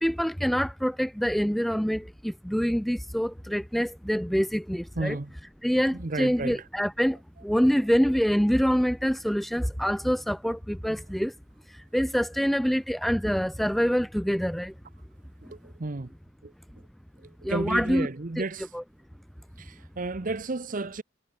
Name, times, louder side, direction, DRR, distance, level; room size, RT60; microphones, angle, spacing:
voice 1, 0.0-5.2 5.6-11.3 11.7-14.7 17.4-18.1 18.4-18.5 18.7-18.8, equal, ahead, 0.3 m, -26 dB
voice 2, 5.0-5.3 6.0-6.6 15.5-16.1 16.4-16.5 17.4-18.6 19.6-21.0, right 3 dB, 45° right, 0.8 m, -32 dB
head